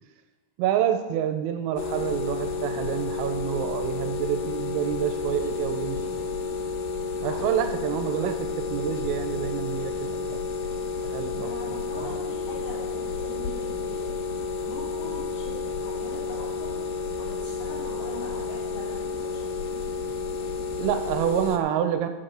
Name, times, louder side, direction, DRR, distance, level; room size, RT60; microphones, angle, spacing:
voice 1, 0.6-6.3 7.2-10.4 11.0-11.5 12.0-12.1 20.8-22.1, right 9 dB, 85° right, 7 dB, 3.4 m, -28 dB
sound 1, 1.8-21.6, left 4 dB, 85° left, 2.3 m, -31 dB
voice 2, 7.2-7.6 11.3-19.5, left 2 dB, 50° left, -7 dB, 5.4 m, -42 dB
11.5 x 7.8 x 6.4 m, 1.2 s
omnidirectional pair, 5.9 m